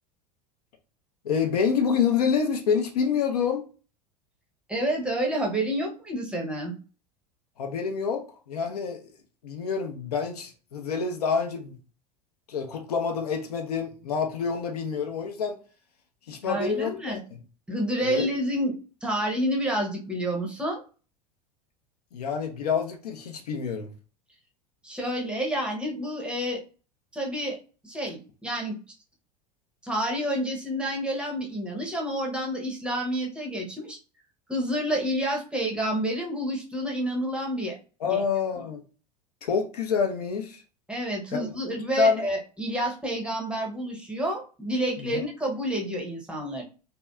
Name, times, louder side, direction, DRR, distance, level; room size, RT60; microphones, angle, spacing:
voice 1, 1.2-3.6 7.6-9.1 9.4-11.8 12.5-15.6 16.3-17.1 18.0-18.3 22.1-23.9 38.0-38.8 39.4-40.6 41.3-41.5 42.0-42.3 45.1-45.2, left 6 dB, 65° left, 0.6 m, -27 dB
voice 2, 4.7-6.7 16.5-17.2 17.7-18.7 19.0-20.8 24.8-26.6 27.1-27.6 27.8-28.8 29.8-34.0 34.5-37.8 38.1-38.2 38.6-38.7 40.9-46.6, right 1 dB, 5° right, 0.7 m, -29 dB
2.6 x 2.4 x 2.2 m
figure-of-eight pair, 80°, 21 cm